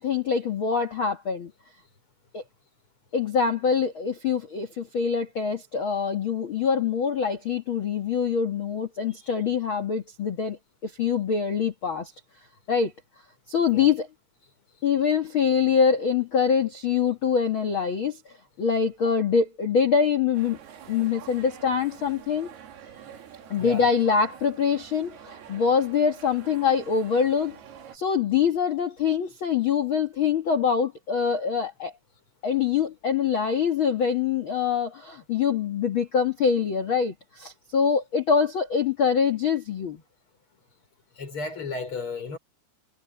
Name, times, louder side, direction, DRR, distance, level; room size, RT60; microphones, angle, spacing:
voice 1, 0.0-1.5 2.3-2.4 3.1-10.6 10.8-12.1 12.7-12.9 13.5-14.1 14.8-18.2 18.6-20.6 20.9-22.5 23.5-27.6 27.9-31.9 32.4-40.0, left 6 dB, 70° left, 1.2 m, -24 dB
sound 1, 20.3-28.0, right 9 dB, 65° right, 4.3 m, -47 dB
voice 2, 23.6-23.9 41.2-42.4, left 3 dB, 30° left, 5.5 m, -34 dB
omnidirectional pair, 5.1 m